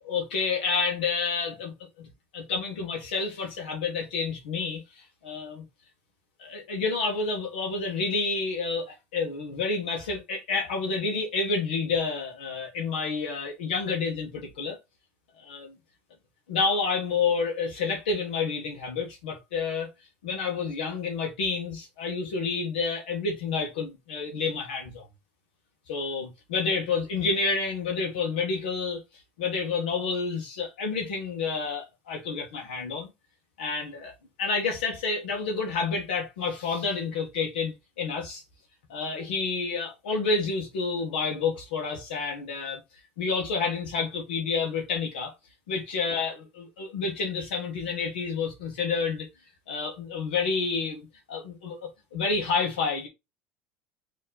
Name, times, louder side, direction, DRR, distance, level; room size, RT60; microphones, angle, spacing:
voice 1, 0.0-1.7 2.3-5.6 6.4-14.8 15.4-15.8 16.5-19.9 20.2-25.0 25.9-29.0 29.4-33.1 33.6-34.1 34.4-38.4 38.9-42.8 43.2-45.3 45.7-49.3 49.7-51.8 52.1-53.1, left 4 dB, 90° left, 1.2 m, -29 dB
4.3 x 2.9 x 3.8 m
supercardioid pair, 95°, 5 cm